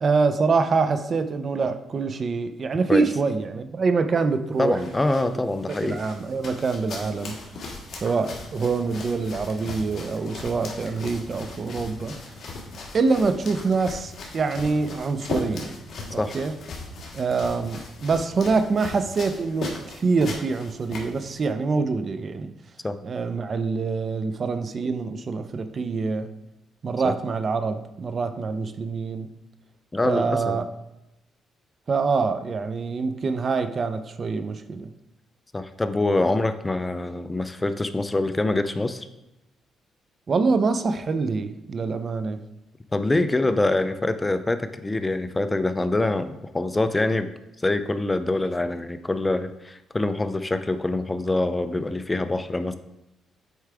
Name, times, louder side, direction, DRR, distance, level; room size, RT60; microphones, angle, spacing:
voice 1, 0.0-4.8 5.8-7.3 8.0-12.1 12.9-15.8 16.1-16.5 17.1-22.5 23.0-26.3 26.8-29.3 30.0-30.6 31.9-34.9 40.3-42.4, right 4 dB, 45° right, 9 dB, 0.5 m, -25 dB
sound 1, 4.5-21.5, left 3 dB, 55° left, 1.6 m, -38 dB
voice 2, 4.6-6.0 16.2-16.4 22.8-23.0 27.0-27.1 29.9-30.6 35.5-39.1 42.9-47.3 47.6-52.8, left 2 dB, 15° left, 10 dB, 0.5 m, -25 dB
8.2 x 4.7 x 3.4 m, 0.94 s
cardioid pair, 90°, 0 cm